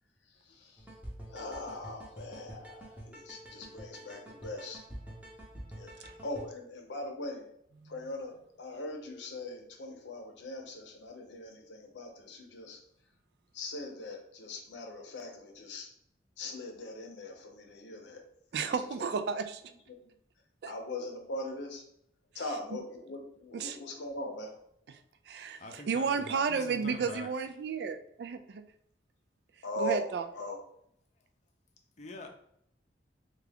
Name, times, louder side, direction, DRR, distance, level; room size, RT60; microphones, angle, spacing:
voice 1, 0.4-0.8 1.3-4.8 5.7-7.5 7.8-12.8 13.5-15.9 16.4-18.2 18.6-18.7 19.0-19.1 19.9-20.1 20.7-21.8 22.3-24.6 29.6-30.6, left 1 dB, 90° left, 3 dB, 0.6 m, -41 dB
sound 1, 0.8-6.5, right 1 dB, 10° right, 0.7 m, -47 dB
voice 2, 18.5-19.6 20.6-20.7 22.7-22.8 23.5-23.8 25.3-28.7 29.8-30.3, right 5 dB, 65° right, 8 dB, 0.3 m, -32 dB
voice 3, 25.6-27.3 32.0-32.3, left 3 dB, 40° left, 3 dB, 0.5 m, -44 dB
3.5 x 2.3 x 3.4 m, 0.71 s
head